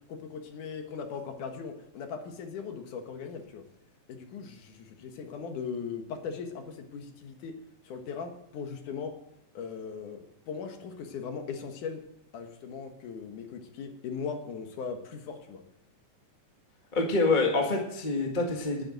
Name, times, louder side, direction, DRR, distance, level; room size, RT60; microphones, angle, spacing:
voice 1, 0.1-3.6 4.1-7.6 7.8-9.1 9.5-12.0 12.3-15.6, left 6 dB, 80° left, 5 dB, 3.0 m, -39 dB
voice 2, 16.9-18.8, left 3 dB, 20° left, 1 dB, 1.5 m, -26 dB
11.0 x 9.7 x 7.9 m, 0.79 s
omnidirectional pair, 3.5 m